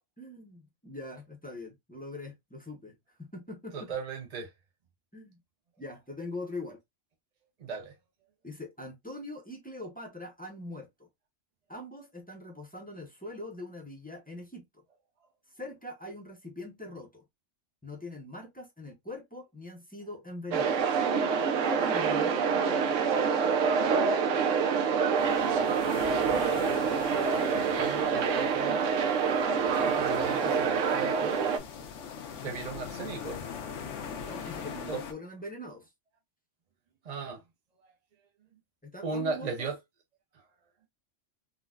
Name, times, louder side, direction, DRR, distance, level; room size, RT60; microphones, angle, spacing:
voice 1, 0.2-3.9 5.1-5.4 5.8-6.8 8.4-11.1 11.7-14.6 15.6-17.2 17.8-20.9 21.6-22.4 32.6-32.8 34.3-35.9 38.8-39.7, left 2 dB, 10° left, 0.6 m, -42 dB
voice 2, 3.7-4.5 7.6-7.9 27.5-28.8 29.9-31.4 32.4-33.4 34.9-35.0 37.0-37.4 39.0-39.8, right 4 dB, 45° right, 0.5 m, -37 dB
sound 1, 20.5-31.6, right 6 dB, 90° right, 1.0 m, -26 dB
sound 2, 25.2-35.1, left 6 dB, 80° left, 1.0 m, -42 dB
3.8 x 2.1 x 2.3 m
omnidirectional pair, 1.2 m